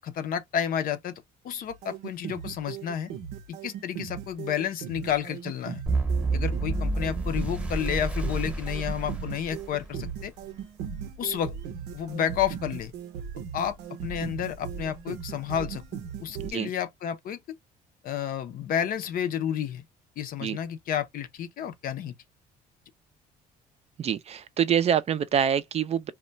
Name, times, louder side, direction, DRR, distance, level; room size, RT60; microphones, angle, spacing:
voice 1, 0.0-1.1 1.4-3.1 3.5-5.8 6.3-10.3 11.2-11.6 11.9-12.9 13.5-13.8 14.0-15.8 16.2-17.6 18.0-19.8 20.2-22.1, left 9 dB, 60° left, 0.5 m, -31 dB
Happy Horror, 1.7-16.5, right 8 dB, 85° right, 0.6 m, -38 dB
sound 1, 5.9-10.0, right 3 dB, 5° right, 0.9 m, -29 dB
voice 2, 24.0-26.1, right 8 dB, 40° right, 0.4 m, -25 dB
2.3 x 2.1 x 3.8 m
cardioid pair, 110°, 17 cm